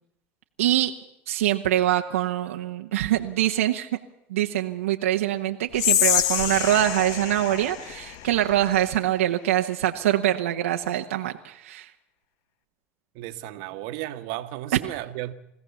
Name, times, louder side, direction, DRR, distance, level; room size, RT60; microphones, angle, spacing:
voice 1, 0.6-1.0 1.3-4.0 4.3-11.9, right 13 dB, 90° right, 1.1 m, -24 dB
Whispering, 5.7-9.0, left 11 dB, 65° left, 1.2 m, -26 dB
voice 2, 13.1-15.3, right 15 dB, 70° right, 1.4 m, -34 dB
23.5 x 16.0 x 7.1 m
supercardioid pair, 95°, 7 cm